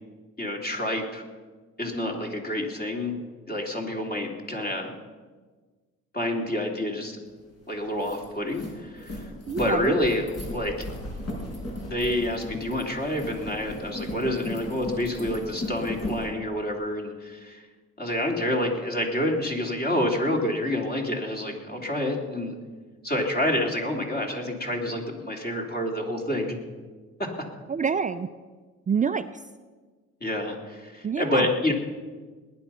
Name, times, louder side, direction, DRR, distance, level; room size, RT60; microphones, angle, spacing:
voice 1, 0.4-1.2 1.8-4.9 6.1-7.2 7.7-10.9 11.9-17.6 18.0-22.6 23.0-26.6 27.2-27.3 30.2-31.7, left 1 dB, 30° left, 1 dB, 3.1 m, -28 dB
sound 1, 7.4-7.5 7.8-16.2, left 1 dB, 55° left, 5.1 m, -36 dB
voice 2, 9.5-10.0 27.7-28.3 28.9-29.3 31.0-31.5, right 6 dB, 25° right, 9 dB, 0.5 m, -26 dB
19.0 x 10.5 x 5.6 m, 1.4 s
cardioid pair, 90°, 30 cm